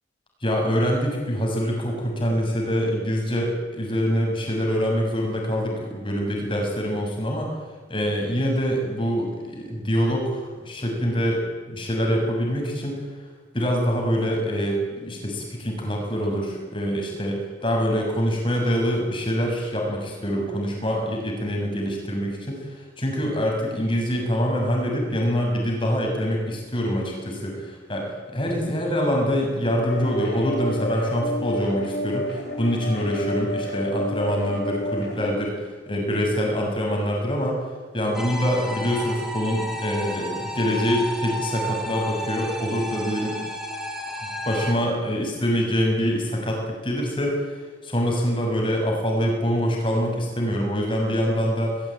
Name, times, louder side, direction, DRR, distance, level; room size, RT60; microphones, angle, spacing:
voice 1, 0.4-7.5 7.9-11.4 11.7-13.0 13.5-35.6 35.9-37.6 37.9-43.4 44.5-47.5 47.8-51.8, equal, 30° left, 0 dB, 7.0 m, -25 dB
sound 1, 29.9-35.3, left 1 dB, 70° left, 7.3 m, -30 dB
sound 2, 38.1-44.7, equal, ahead, 3.8 m, -32 dB
21.5 x 20.5 x 9.2 m, 1.4 s
head